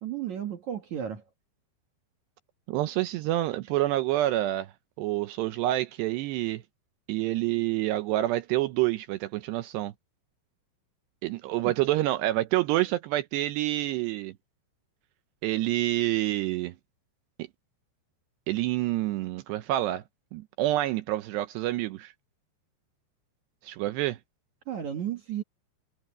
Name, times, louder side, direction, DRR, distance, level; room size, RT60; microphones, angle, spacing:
voice 1, 0.0-1.2 11.6-11.7 24.7-25.4, right 10 dB, 60° right, 2.1 m, -33 dB
voice 2, 2.7-6.6 7.1-9.9 11.2-14.3 15.4-16.8 17.4-17.5 18.5-20.0 20.3-22.1 23.6-24.2, right 15 dB, 80° right, 2.5 m, -28 dB
omnidirectional pair, 5.6 m